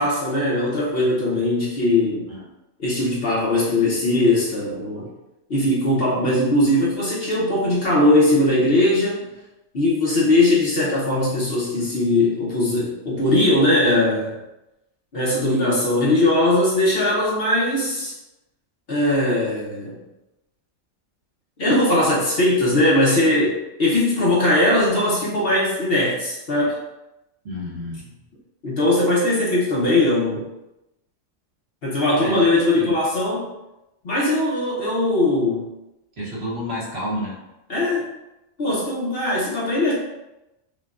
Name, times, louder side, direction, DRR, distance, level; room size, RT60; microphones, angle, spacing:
voice 1, 0.0-2.2 2.8-5.1 5.5-9.2 9.7-14.3 15.1-18.1 18.9-20.0 21.6-26.8 28.6-30.4 31.8-33.5 34.0-35.7 37.7-38.0 38.6-40.0, left 1 dB, 50° left, -6 dB, 0.9 m, -20 dB
voice 2, 27.4-28.1 32.1-32.9 36.2-37.4, equal, 50° right, -5 dB, 1.1 m, -30 dB
5.8 x 2.2 x 2.4 m, 0.95 s
omnidirectional pair, 1.4 m